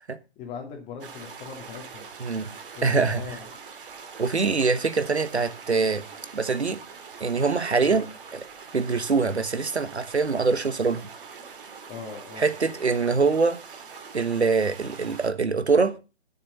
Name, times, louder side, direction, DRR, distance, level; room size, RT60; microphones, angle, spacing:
voice 1, 0.4-2.1 2.7-3.5 7.8-8.1 11.9-12.5, left 6 dB, 20° left, 2.6 m, -40 dB
sound 1, 1.0-15.3, right 5 dB, 55° right, 2.4 m, -43 dB
voice 2, 2.2-2.5 2.8-3.2 4.2-6.0 6.3-6.8 7.2-8.0 8.7-11.1 12.4-13.6 14.1-16.0, right 4 dB, 85° right, 1.4 m, -23 dB
14.0 x 6.7 x 5.4 m
figure-of-eight pair, 130°, 32 cm